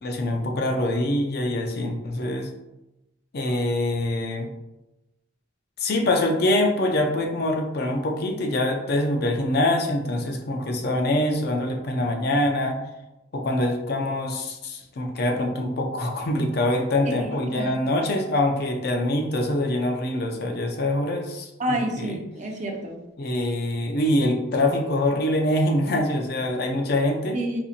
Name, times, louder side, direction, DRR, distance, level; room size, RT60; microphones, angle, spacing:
voice 1, 0.0-2.5 3.3-4.5 5.8-12.8 13.3-22.2 23.2-27.4, left 1 dB, 55° left, 3 dB, 0.5 m, -24 dB
voice 2, 17.0-17.8 21.6-23.0 27.3-27.6, right 1 dB, 40° right, 2 dB, 0.5 m, -29 dB
4.2 x 2.7 x 2.4 m, 0.95 s
head